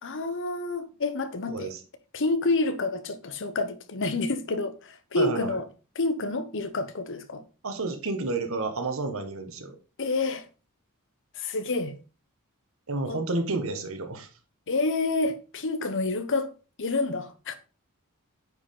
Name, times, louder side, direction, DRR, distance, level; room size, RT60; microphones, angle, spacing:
voice 1, 0.0-1.7 2.1-5.7 5.9-7.4 10.0-10.5 11.3-12.0 13.1-13.2 14.7-16.5 16.8-17.5, left 3 dB, 60° left, 0.9 m, -28 dB
voice 2, 1.5-1.8 5.2-5.6 7.6-9.7 12.9-14.3, right 3 dB, 65° right, 1.4 m, -30 dB
9.4 x 4.8 x 3.8 m
head